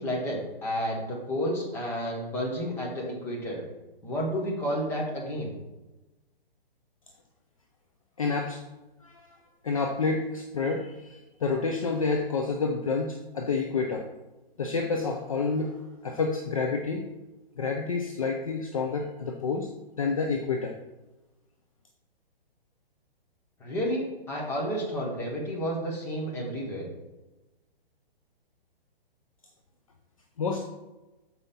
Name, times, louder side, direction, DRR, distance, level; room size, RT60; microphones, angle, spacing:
voice 1, 0.0-3.6 4.0-5.5 23.6-26.9, equal, 5° left, -3 dB, 1.0 m, -31 dB
voice 2, 8.2-8.6 9.0-9.2 9.6-14.1 14.6-15.8 16.0-17.0 17.6-19.7 20.0-20.8 30.4-30.7, left 4 dB, 35° left, 4 dB, 0.5 m, -29 dB
7.1 x 5.4 x 4.2 m, 1.1 s
hypercardioid pair, 165°, 30 cm